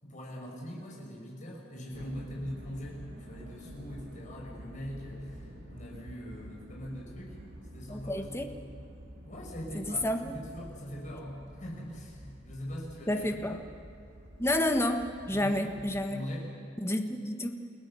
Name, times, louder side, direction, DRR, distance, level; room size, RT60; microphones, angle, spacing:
voice 1, 0.0-7.4 7.7-8.5 9.2-13.6 15.3-15.8 16.1-16.5, equal, 40° left, -2 dB, 6.0 m, -42 dB
sound 1, 1.9-16.0, equal, 60° right, 2.9 m, -48 dB
voice 2, 7.9-8.5 9.7-10.3 13.1-13.6 14.4-15.0 15.3-16.2 16.8-17.5, left 1 dB, 15° left, 5 dB, 1.4 m, -30 dB
29.5 x 17.0 x 6.9 m, 2.6 s
head